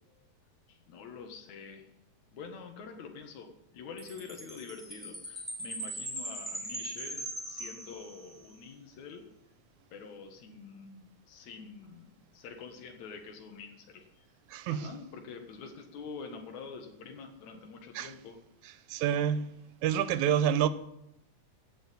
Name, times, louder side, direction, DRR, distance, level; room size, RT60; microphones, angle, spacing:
voice 1, 0.7-1.9 2.3-9.3 9.9-14.3 14.7-18.4, left 5 dB, 75° left, 2.9 m, -46 dB
Chime, 4.0-8.5, right 1 dB, ahead, 4.1 m, -40 dB
voice 2, 14.5-14.9 18.0-18.1 18.9-19.5 19.8-20.7, right 9 dB, 90° right, 2.2 m, -28 dB
16.0 x 6.5 x 8.2 m
omnidirectional pair, 3.3 m